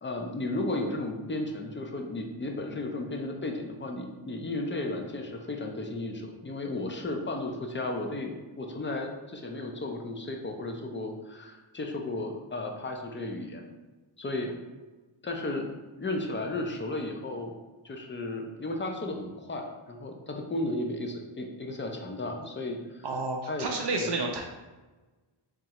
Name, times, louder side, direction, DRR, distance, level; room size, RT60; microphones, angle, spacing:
voice 1, 0.0-13.7 14.2-14.5 15.2-15.7 16.0-17.5 17.8-23.1 23.5-23.7 24.0-24.1, left 2 dB, 25° left, 3 dB, 0.4 m, -34 dB
voice 2, 23.0-24.4, right 3 dB, 55° right, 2 dB, 0.5 m, -30 dB
3.6 x 3.1 x 2.9 m, 1.2 s
wide cardioid pair, 130°, 49 cm